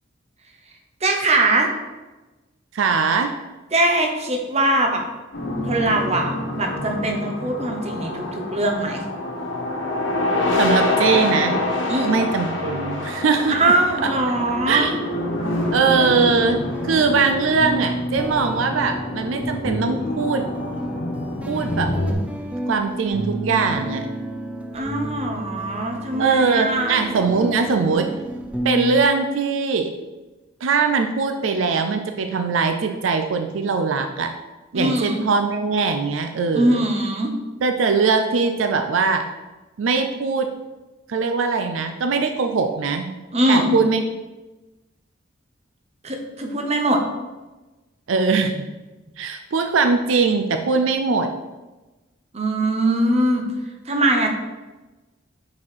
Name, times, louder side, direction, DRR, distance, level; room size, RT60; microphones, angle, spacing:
voice 1, 1.0-1.7 3.7-5.1 5.7-9.0 11.9-12.2 13.5-14.9 16.0-16.1 24.7-27.0 34.7-35.2 36.5-37.3 43.3-43.7 46.0-47.0 52.3-53.4 53.9-54.3, right 1 dB, 35° right, 3 dB, 0.9 m, -21 dB
voice 2, 2.7-3.3 10.6-11.6 12.0-13.6 14.0-14.3 14.7-14.9 15.7-16.6 16.8-20.5 21.5-21.9 22.7-24.1 26.2-28.1 28.6-29.9 30.6-34.3 34.7-36.8 37.6-39.2 39.8-40.5 41.1-43.1 43.5-44.0 48.1-48.6 49.2-51.3, right 4 dB, 80° right, 6 dB, 0.5 m, -21 dB
sound 1, 5.3-22.1, left 2 dB, 65° left, 1.2 m, -26 dB
sound 2, 15.4-29.0, right 1 dB, 5° right, 0.4 m, -31 dB
6.1 x 4.2 x 4.4 m, 1.1 s
head